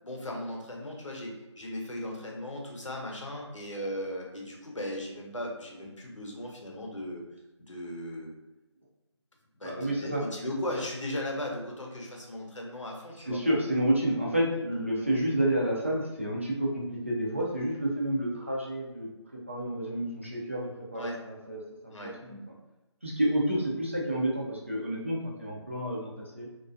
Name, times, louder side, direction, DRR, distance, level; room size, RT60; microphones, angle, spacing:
voice 1, 0.0-7.2 7.6-8.3 9.6-13.4 21.0-21.2 21.9-22.1, left 1 dB, 90° left, 0 dB, 0.7 m, -37 dB
voice 2, 9.6-10.2 13.3-22.4 23.0-26.5, right 1 dB, 25° right, -4 dB, 0.3 m, -30 dB
2.4 x 2.1 x 2.4 m, 1.0 s
figure-of-eight pair, 165°, 15 cm